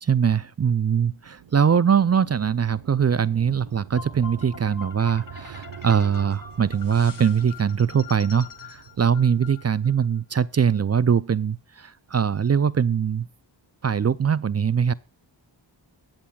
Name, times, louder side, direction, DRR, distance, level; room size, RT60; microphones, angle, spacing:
voice 1, 0.0-13.3 13.8-14.9, right 7 dB, 35° right, 0.4 m, -22 dB
sound 1, 1.2-10.0, right 9 dB, 75° right, 0.8 m, -45 dB
sound 2, 4.0-10.1, left 6 dB, 45° left, 1.6 m, -43 dB
21.5 x 7.5 x 2.3 m
wide cardioid pair, 85°, 46 cm